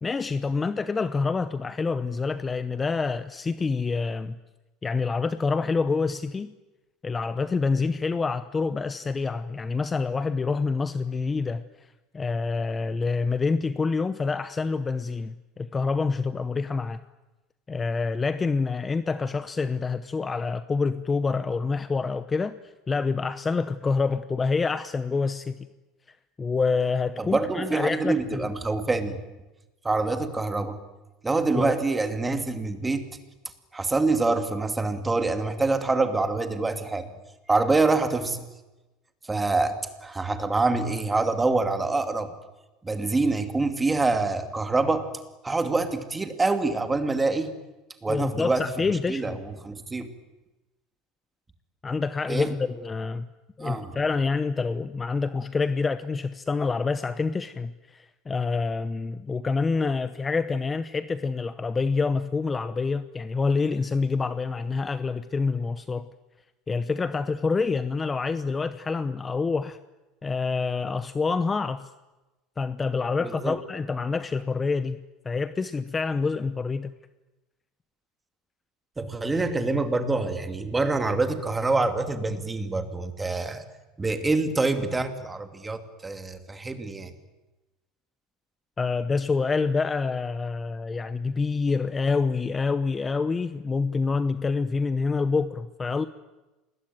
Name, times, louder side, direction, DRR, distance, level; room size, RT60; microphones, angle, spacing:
voice 1, 0.0-4.4 4.8-6.5 7.0-17.0 17.7-22.5 22.9-25.7 26.4-28.5 31.5-31.7 48.1-49.4 51.8-53.3 53.6-66.1 66.7-69.8 70.2-71.9 72.6-76.9 88.8-96.1, left 4 dB, 15° left, 13 dB, 0.9 m, -27 dB
voice 2, 27.2-29.2 29.8-30.8 31.2-33.1 33.7-37.1 37.5-38.4 39.3-42.3 42.8-45.1 45.4-47.5 48.0-48.6 49.1-50.1 52.3-52.5 53.6-53.9 73.2-73.6 79.0-83.6 84.0-87.1, right 3 dB, 10° right, 8 dB, 2.6 m, -26 dB
28.0 x 21.0 x 9.3 m, 1.1 s
supercardioid pair, 135°, 0 cm